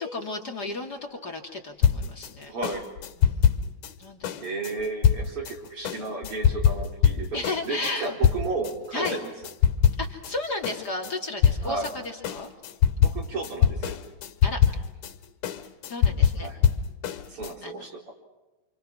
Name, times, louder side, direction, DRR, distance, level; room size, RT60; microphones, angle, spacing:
voice 1, 0.0-2.5 3.2-3.7 4.0-4.3 7.3-8.1 8.9-9.2 10.0-12.5 14.4-14.6 15.9-16.5 17.6-17.9, left 2 dB, 35° left, 2 dB, 2.9 m, -33 dB
sound 1, 1.8-8.8 9.1-10.4 10.6-17.5, left 8 dB, 85° left, 3.1 m, -24 dB
voice 2, 2.5-2.9 4.4-9.3 11.6-11.9 13.0-14.0 16.4-16.6 17.3-18.1, right 3 dB, 45° right, 2 dB, 4.9 m, -33 dB
29.0 x 28.0 x 6.2 m, 1.1 s
omnidirectional pair, 3.4 m